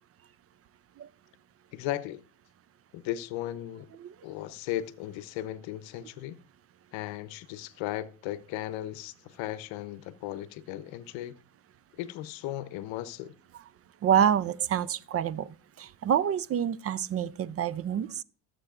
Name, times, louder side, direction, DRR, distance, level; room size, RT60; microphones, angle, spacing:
voice 1, 1.7-2.2 2.9-3.9 4.2-6.4 6.9-11.4 12.0-13.3, left 13 dB, 70° left, 0.8 m, -36 dB
voice 2, 14.0-15.5 15.8-18.2, right 9 dB, 30° right, 0.4 m, -27 dB
14.0 x 7.7 x 2.4 m
supercardioid pair, 85°, 49 cm